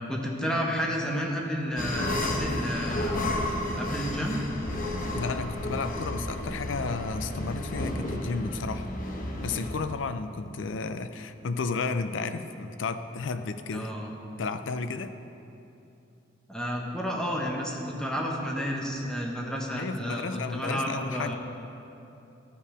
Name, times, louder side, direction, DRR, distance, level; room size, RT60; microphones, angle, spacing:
voice 1, 0.1-3.3 3.8-4.4 13.7-14.1 16.5-21.4, equal, 5° left, -1 dB, 1.0 m, -31 dB
sound 1, 1.8-9.7, left 1 dB, 45° left, 0.9 m, -32 dB
voice 2, 5.1-8.9 9.1-13.9 14.4-15.2 19.8-21.3, left 4 dB, 80° left, 10 dB, 0.5 m, -33 dB
12.5 x 5.6 x 4.9 m, 2.8 s
head